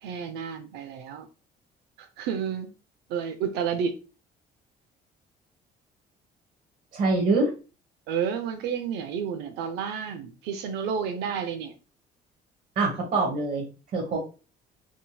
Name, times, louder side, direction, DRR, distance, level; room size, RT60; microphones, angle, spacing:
voice 1, 0.0-1.3 2.0-2.7 3.1-3.9 8.1-11.7, right 7 dB, 85° right, 8 dB, 0.4 m, -30 dB
voice 2, 6.9-7.5 12.8-13.7 13.9-14.2, right 3 dB, 55° right, -2 dB, 1.0 m, -24 dB
3.6 x 2.6 x 2.2 m, 0.34 s
cardioid pair, 110°, 17 cm